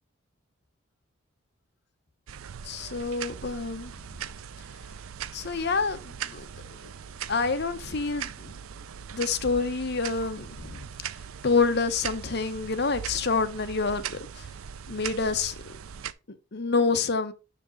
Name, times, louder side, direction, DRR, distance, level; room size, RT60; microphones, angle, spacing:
sound 1, 2.3-16.1, right 8 dB, 80° right, 0.4 m, -40 dB
voice 1, 2.6-3.9 5.3-6.5 7.3-8.5 9.1-10.8 11.4-14.1 14.9-15.5 16.5-17.3, left 4 dB, 50° left, 0.8 m, -27 dB
6.7 x 5.1 x 3.8 m
head